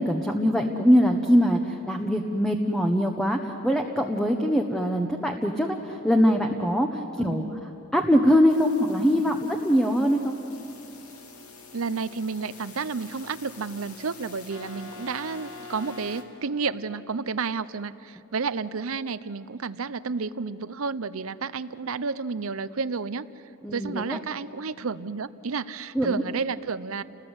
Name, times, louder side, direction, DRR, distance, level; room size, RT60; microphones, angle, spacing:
voice 1, 0.0-7.4 7.9-10.3 23.6-24.2 25.9-26.2, equal, 5° left, 3 dB, 1.0 m, -22 dB
voice 2, 7.2-7.6 11.7-23.2 23.7-27.0, right 4 dB, 70° right, 15 dB, 0.7 m, -31 dB
sound 1, 8.5-16.2, left 4 dB, 85° left, 2.6 m, -45 dB
29.5 x 20.0 x 8.1 m, 2.9 s
head